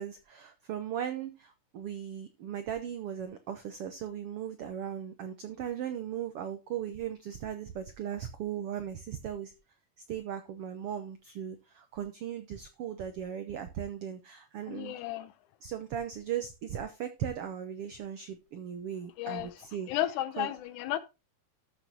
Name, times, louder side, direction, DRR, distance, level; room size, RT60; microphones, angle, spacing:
voice 1, 0.0-9.5 10.1-14.9 15.6-19.9 20.4-20.5, right 9 dB, 80° right, 1.3 m, -38 dB
voice 2, 14.7-15.3 19.2-19.5 19.9-21.0, left 13 dB, 75° left, 2.1 m, -33 dB
13.5 x 6.4 x 2.8 m
omnidirectional pair, 3.8 m